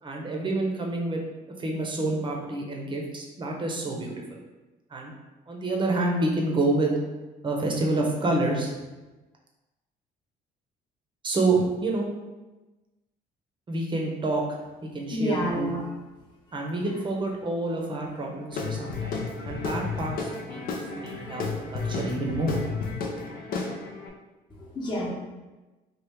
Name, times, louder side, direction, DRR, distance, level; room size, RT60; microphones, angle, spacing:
voice 1, 0.0-1.2 1.6-4.1 4.9-5.1 5.5-7.0 7.4-8.8 11.2-12.1 13.7-14.4 14.8-15.7 16.5-19.2 19.4-20.6 21.0-21.4 21.7-22.6, right 2 dB, 30° right, 0 dB, 0.7 m, -28 dB
voice 2, 15.1-15.8 20.6-20.9 21.1-21.3 24.6-25.1, left 1 dB, 25° left, -6 dB, 0.9 m, -29 dB
Guitar / Drum, 18.5-24.1, left 4 dB, 60° left, 0.5 m, -32 dB
3.1 x 2.4 x 3.4 m, 1.1 s
cardioid pair, 110°, 17 cm